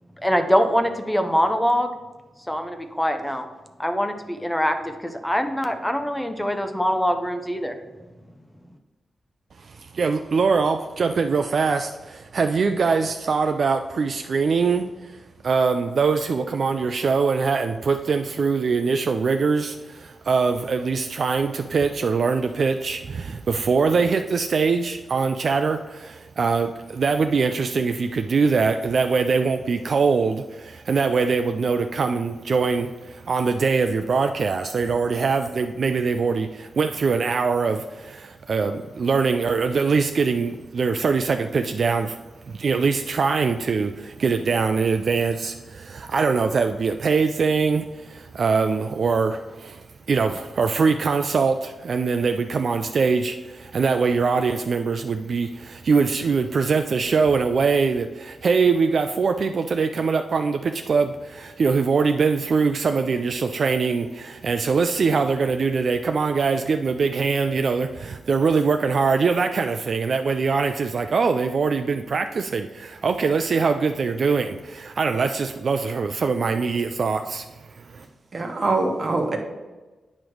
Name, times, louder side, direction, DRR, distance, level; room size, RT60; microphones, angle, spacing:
voice 1, 0.2-1.9 2.5-3.5 3.8-7.8, equal, 10° left, 7 dB, 0.7 m, -23 dB
voice 2, 9.6-42.2 42.5-78.0, right 5 dB, 60° right, 6 dB, 0.3 m, -23 dB
voice 3, 78.3-79.4, right 3 dB, 45° right, 3 dB, 1.2 m, -23 dB
8.7 x 3.1 x 6.3 m, 1.2 s
cardioid pair, 80°, 0 cm